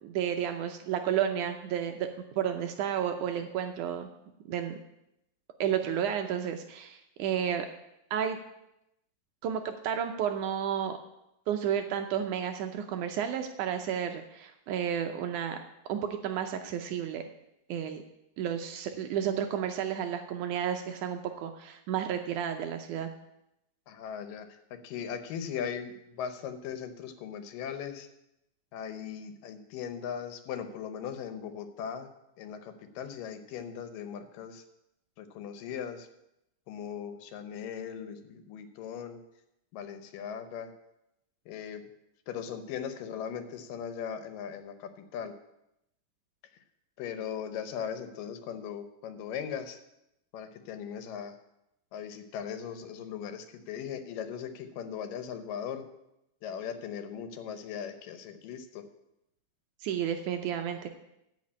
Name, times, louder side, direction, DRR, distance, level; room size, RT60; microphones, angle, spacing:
voice 1, 0.0-2.1 2.4-4.1 4.5-4.8 5.6-7.7 8.1-8.4 9.4-11.0 11.5-15.6 15.9-17.2 17.7-18.0 18.4-23.1 59.8-60.9, right 9 dB, 75° right, 6 dB, 2.0 m, -31 dB
voice 2, 23.9-24.5 24.8-28.1 28.7-32.1 32.4-34.6 35.2-36.1 36.7-39.2 39.7-40.7 41.5-41.8 42.3-44.7 45.1-45.3 47.0-49.8 50.3-51.3 51.9-55.8 56.4-58.6, left 8 dB, 80° left, 9 dB, 2.5 m, -38 dB
13.5 x 5.0 x 8.5 m, 0.85 s
omnidirectional pair, 3.9 m